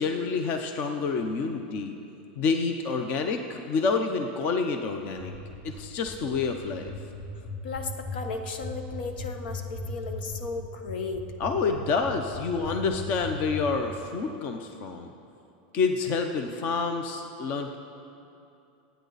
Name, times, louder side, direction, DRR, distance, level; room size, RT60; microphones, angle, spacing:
voice 1, 0.0-1.9 2.4-5.3 5.6-6.9 11.4-15.1 15.7-17.8, left 4 dB, 30° left, 5 dB, 0.7 m, -28 dB
sound 1, 5.2-13.6, left 3 dB, 50° left, 3.3 m, -38 dB
voice 2, 7.6-11.3, left 4 dB, 75° left, 6 dB, 1.3 m, -35 dB
26.5 x 9.2 x 4.1 m, 2.7 s
supercardioid pair, 175°, 5 cm